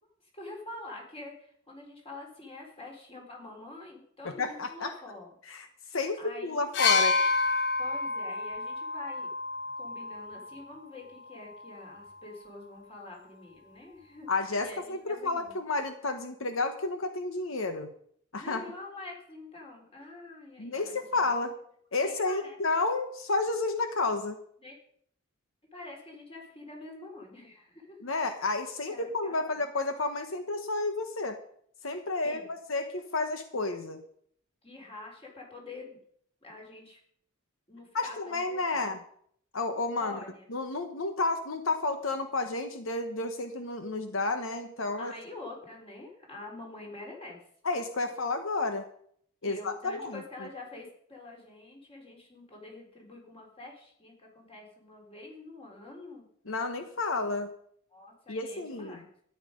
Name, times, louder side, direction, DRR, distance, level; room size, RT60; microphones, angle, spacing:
voice 1, 0.3-5.3 6.2-6.7 7.8-9.3 9.8-14.3 14.6-15.5 18.4-21.2 22.0-22.6 24.6-24.8 25.7-28.0 28.9-29.8 32.2-32.5 34.6-36.0 36.4-37.0 37.7-39.0 40.0-40.4 45.0-47.4 49.4-56.3 57.9-59.1, left 2 dB, 30° left, 0 dB, 3.7 m, -46 dB
voice 2, 4.2-4.9 5.5-7.2 14.3-17.9 18.3-18.6 20.6-21.5 21.9-24.4 28.0-31.4 31.8-34.0 37.9-39.0 39.5-40.2 40.5-45.1 47.6-48.9 49.4-50.5 56.5-57.5 58.3-59.0, left 3 dB, 85° left, 8 dB, 1.1 m, -31 dB
sound 1, 6.7-10.6 11.6-11.7, left 4 dB, 60° left, 0.9 m, -29 dB
13.0 x 9.9 x 5.2 m, 0.64 s
head